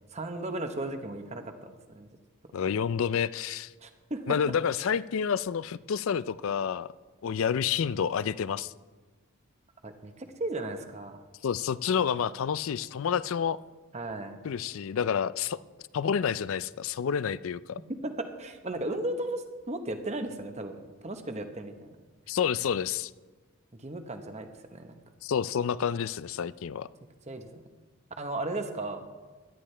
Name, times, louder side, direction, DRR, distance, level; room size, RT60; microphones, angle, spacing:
voice 1, 0.1-2.1 3.8-4.3 9.8-11.2 13.9-14.4 18.0-21.7 23.8-25.0 27.3-27.6 28.2-29.0, right 2 dB, 30° right, 7 dB, 1.0 m, -35 dB
voice 2, 2.5-3.7 4.3-6.9 7.2-8.7 11.4-13.6 14.4-15.6 15.9-17.8 22.3-23.1 25.2-26.9, left 7 dB, 65° left, 18 dB, 0.4 m, -29 dB
17.5 x 12.0 x 3.3 m, 1.3 s
head